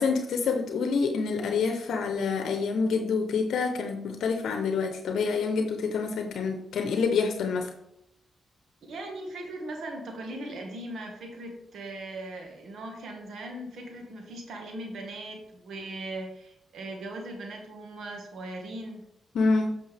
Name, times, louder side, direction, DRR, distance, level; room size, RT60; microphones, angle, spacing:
voice 1, 0.0-7.7 19.3-19.7, left 4 dB, 80° left, 5 dB, 0.8 m, -27 dB
voice 2, 8.9-19.0, right 1 dB, 75° right, 2 dB, 1.7 m, -39 dB
8.5 x 6.2 x 3.4 m, 0.77 s
cardioid pair, 65°, 0 cm